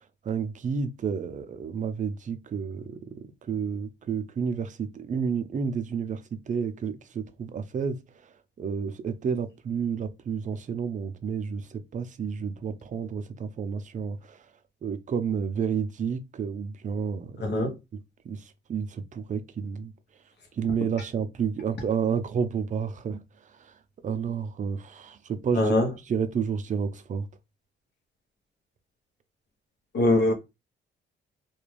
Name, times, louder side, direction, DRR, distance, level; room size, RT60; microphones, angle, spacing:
voice 1, 0.2-3.2 3.5-8.0 8.6-14.4 14.8-17.6 17.9-18.0 18.2-19.9 20.6-23.2 23.6-23.7 24.0-25.7 26.1-27.3, right 6 dB, 40° right, 0.4 m, -30 dB
voice 2, 17.4-17.7 25.5-25.9 29.9-30.3, left 2 dB, 60° left, 0.9 m, -22 dB
2.5 x 2.3 x 3.1 m
cardioid pair, 90°, 20 cm